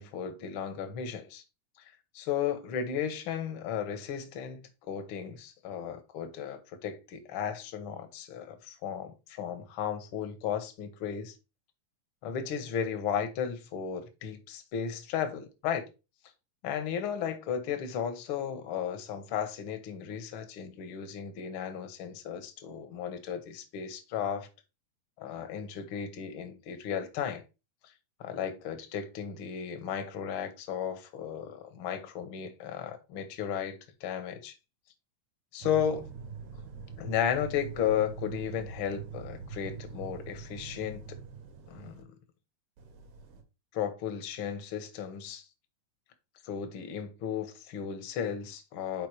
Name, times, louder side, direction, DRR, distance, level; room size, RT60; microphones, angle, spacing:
voice 1, 0.0-1.4 2.1-11.3 12.2-15.8 16.6-24.5 25.2-27.4 28.2-34.5 35.5-36.1 37.0-41.2 41.7-42.1 43.7-45.5 46.4-49.1, left 8 dB, 65° left, 1.4 m, -34 dB
sound 1, 35.6-42.0 42.8-43.4, right 5 dB, 80° right, 2.9 m, -44 dB
5.9 x 4.7 x 4.6 m
omnidirectional pair, 3.5 m